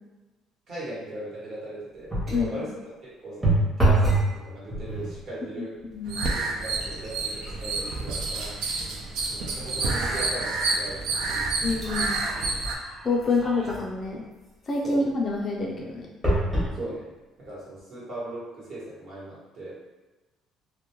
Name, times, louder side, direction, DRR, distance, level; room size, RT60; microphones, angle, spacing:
voice 1, 0.7-5.7 6.3-8.6 9.3-11.5 14.8-15.0 16.7-17.1 17.4-19.8, right 1 dB, 50° right, -8 dB, 1.1 m, -38 dB
sound 1, 2.1-2.5 3.4-4.3 4.7-5.2 5.9-6.1 6.4-10.0 10.5-10.6 11.3-14.0 16.2-16.7 17.4-17.5 17.8-17.9, right 1 dB, 10° right, 0.8 m, -27 dB
voice 2, 5.6-6.2 11.6-12.2 13.0-14.2 14.7-16.1, left 3 dB, 30° left, -1 dB, 0.4 m, -27 dB
sound 2, 6.1-12.8, right 3 dB, 80° right, 0.4 m, -29 dB
2.2 x 2.1 x 2.9 m, 1.1 s
cardioid pair, 150°, 0 cm